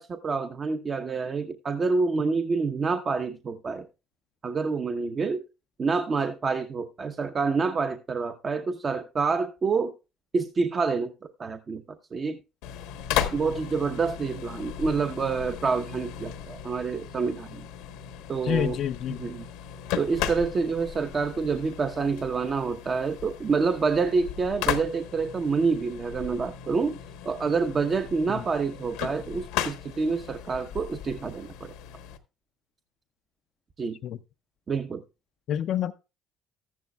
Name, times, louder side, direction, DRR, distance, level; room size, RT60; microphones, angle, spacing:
voice 1, 0.0-3.9 4.4-5.4 5.8-9.9 10.3-11.1 11.4-11.8 12.1-12.4 13.3-17.6 18.3-18.8 19.1-19.5 20.0-27.0 27.2-31.7 33.8-34.0 34.7-35.0, right 4 dB, 40° right, 0.8 m, -27 dB
freezer commercial walk-in open close from inside, 12.6-32.2, left 10 dB, 90° left, 1.1 m, -36 dB
voice 2, 18.4-19.3 28.3-28.4 34.0-34.2 35.5-35.9, left 10 dB, 65° left, 0.4 m, -28 dB
13.5 x 10.5 x 2.3 m
supercardioid pair, 80°, 0 cm